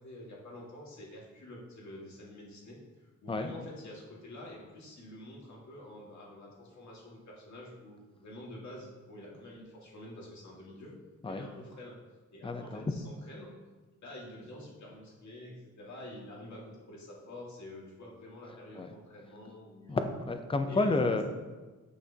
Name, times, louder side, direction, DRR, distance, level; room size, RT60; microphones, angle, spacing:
voice 1, 0.0-10.9 11.2-12.0 12.3-13.5 14.0-20.0 20.7-21.1, left 1 dB, 65° left, -3 dB, 2.1 m, -48 dB
voice 2, 12.4-12.8 18.7-18.9 19.9-21.2, left 3 dB, 15° left, 7 dB, 0.5 m, -30 dB
9.4 x 7.9 x 2.8 m, 1.3 s
wide cardioid pair, 165°, 31 cm